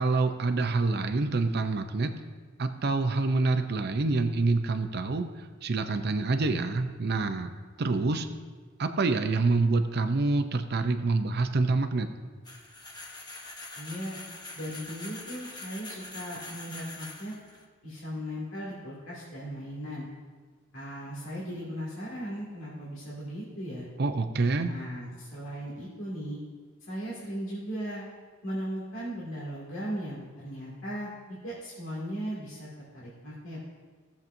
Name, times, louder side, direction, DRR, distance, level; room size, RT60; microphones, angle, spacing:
voice 1, 0.0-2.1 2.6-7.5 7.8-8.3 8.8-12.1 24.0-24.7, right 3 dB, 55° right, 7 dB, 0.6 m, -27 dB
sound 1, 12.5-17.6, left 2 dB, 20° left, 1.0 m, -44 dB
voice 2, 13.8-14.2 14.5-17.3 17.8-20.1 20.7-23.9 24.6-26.4 26.8-28.1 28.4-32.7 32.9-33.6, equal, 80° left, -8 dB, 2.4 m, -37 dB
18.0 x 7.2 x 2.7 m, 1.5 s
head